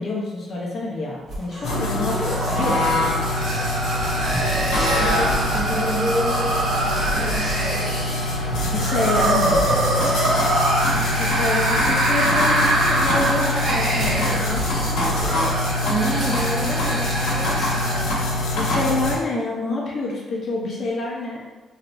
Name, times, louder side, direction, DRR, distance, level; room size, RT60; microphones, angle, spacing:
voice 1, 0.0-3.2 8.6-9.7 11.2-14.6 18.5-21.4, left 2 dB, 55° left, -3 dB, 0.8 m, -27 dB
sound 1, 1.3-16.4, right 1 dB, 45° right, 1.4 m, -35 dB
sound 2, 1.5-18.1, right 1 dB, 60° right, 0.9 m, -25 dB
sound 3, 1.6-19.2, left 1 dB, 85° left, 0.8 m, -24 dB
voice 2, 4.6-8.3 15.8-18.2, right 1 dB, 15° right, -2 dB, 0.7 m, -29 dB
3.2 x 2.8 x 2.6 m, 1.2 s
cardioid pair, 90°, 0 cm